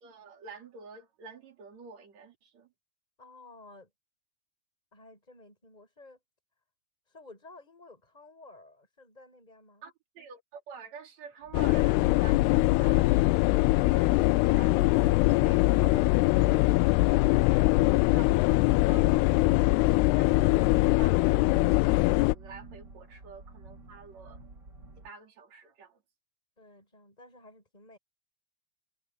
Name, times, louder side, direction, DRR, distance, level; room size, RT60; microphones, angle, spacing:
voice 1, 0.0-2.7 9.8-14.1 14.4-17.3 17.8-21.7 22.2-24.4 25.0-26.0, right 5 dB, 45° right, 3.5 m, -49 dB
voice 2, 3.2-3.9 4.9-6.2 7.1-9.9 22.9-23.1 26.6-28.0, left 2 dB, 10° left, 7.8 m, -53 dB
sound 1, 11.4-25.1, right 2 dB, 25° right, 3.9 m, -49 dB
sound 2, 11.5-22.4, left 21 dB, 85° left, 2.3 m, -22 dB
omnidirectional pair, 5.1 m